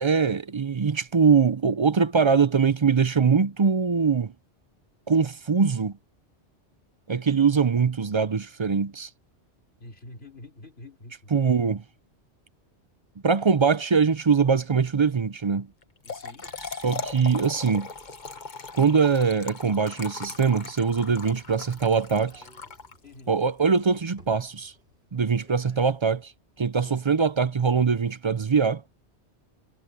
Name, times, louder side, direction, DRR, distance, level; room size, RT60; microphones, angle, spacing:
voice 1, 0.0-4.3 5.1-5.9 7.1-9.1 11.3-11.8 13.2-15.7 16.8-17.9 18.7-22.4 23.3-24.7 25.1-26.3 26.6-28.8, right 5 dB, 40° right, 0.4 m, -22 dB
voice 2, 9.8-11.3 16.0-16.5 23.0-23.4 26.8-27.3, left 2 dB, 60° left, 3.6 m, -47 dB
Trickle dribble / Fill (with liquid), 15.8-23.3, left 4 dB, 40° left, 1.4 m, -39 dB
Piano, 16.4-17.7, equal, 75° left, 4.2 m, -56 dB
sound 1, 20.8-25.8, equal, 60° right, 6.0 m, -57 dB
omnidirectional pair, 1.2 m